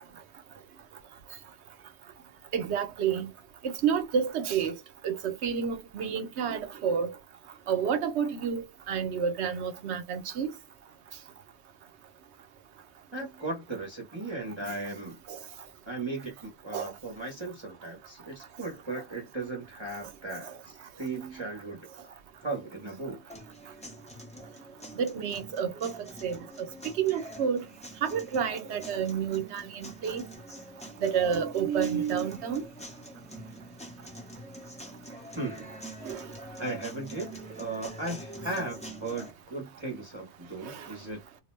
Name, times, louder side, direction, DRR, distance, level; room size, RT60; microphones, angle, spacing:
voice 1, 2.5-3.3 3.6-4.7 5.0-7.1 7.7-10.5 15.3-15.4 16.7-16.9 25.0-26.7 27.0-27.6 28.0-30.2 31.0-32.6 36.0-36.2 40.6-40.9, right 7 dB, 80° right, 0.9 m, -29 dB
voice 2, 13.1-15.2 15.9-22.1 22.4-23.2 35.4-35.8 36.6-41.2, right 2 dB, 25° right, 0.9 m, -37 dB
sound 1, 23.3-39.3, right 1 dB, 5° left, 0.6 m, -45 dB
2.5 x 2.1 x 3.0 m
omnidirectional pair, 1.2 m